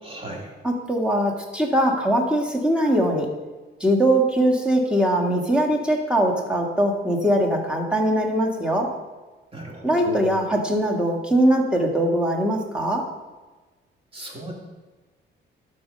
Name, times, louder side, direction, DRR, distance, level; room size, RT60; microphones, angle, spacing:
voice 1, 0.0-0.5 9.5-10.2 14.1-14.5, right 2 dB, 30° right, -1 dB, 2.5 m, -35 dB
voice 2, 0.6-3.3 3.8-8.9 9.8-13.1, right 1 dB, 5° right, 0 dB, 1.7 m, -21 dB
12.0 x 4.5 x 5.3 m, 1.3 s
cardioid pair, 90°, 20 cm